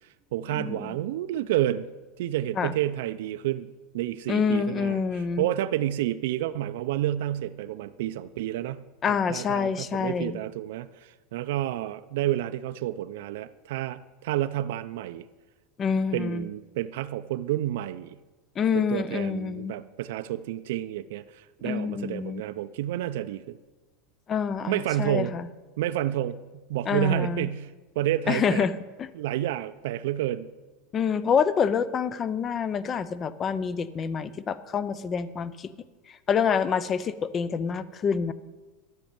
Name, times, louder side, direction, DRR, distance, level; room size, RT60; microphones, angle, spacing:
voice 1, 0.3-1.9 2.2-15.3 16.1-18.2 18.7-23.6 24.7-25.3 25.8-28.7 29.1-30.5, right 13 dB, 70° right, 11 dB, 0.4 m, -30 dB
voice 2, 4.3-5.5 9.0-10.4 15.8-16.5 18.6-19.7 21.6-22.4 24.3-25.4 26.9-27.5 28.3-28.7 29.0-29.1 30.9-35.7 36.3-38.3, left 6 dB, 20° left, 16 dB, 0.4 m, -27 dB
12.0 x 5.4 x 8.6 m, 1.2 s
supercardioid pair, 175°, 0 cm